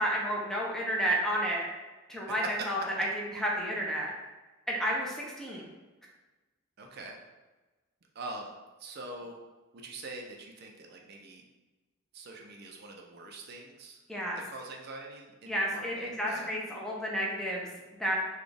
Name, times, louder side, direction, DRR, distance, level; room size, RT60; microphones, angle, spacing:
voice 1, 0.0-1.7 2.1-3.1 3.3-4.1 4.7-5.7 14.1-14.4 15.5-17.7 18.0-18.2, equal, ahead, -3 dB, 0.5 m, -31 dB
voice 2, 2.3-2.9 6.8-7.2 8.2-8.5 8.8-9.3 9.7-11.4 12.1-14.0 14.4-16.5, right 2 dB, 50° right, 1 dB, 0.4 m, -43 dB
4.1 x 2.3 x 3.3 m, 1.2 s
head